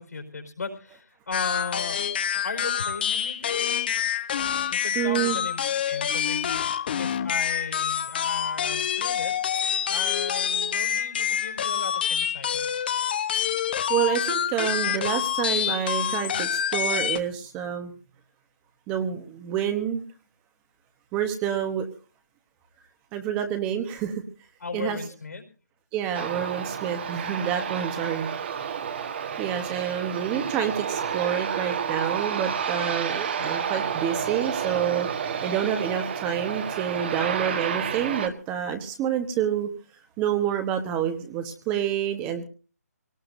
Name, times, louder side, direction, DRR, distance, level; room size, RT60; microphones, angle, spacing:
voice 1, 0.0-2.0 2.4-3.7 4.7-9.3 9.9-12.7 24.6-25.4 33.4-33.6, left 4 dB, 75° left, 3 dB, 4.8 m, -36 dB
sound 1, 1.3-17.2, left 9 dB, 35° left, 0.8 m, -27 dB
voice 2, 4.9-5.4 13.9-17.9 18.9-20.0 21.1-21.9 23.1-24.2 24.7-25.0 25.9-28.3 29.4-35.1 35.4-39.7 40.2-42.4, right 9 dB, 15° right, 7 dB, 1.2 m, -28 dB
Aircraft, 26.1-38.3, right 7 dB, 40° right, 1.5 m, -30 dB
23.5 x 18.5 x 2.7 m, 0.36 s
hypercardioid pair, 160°, 9 cm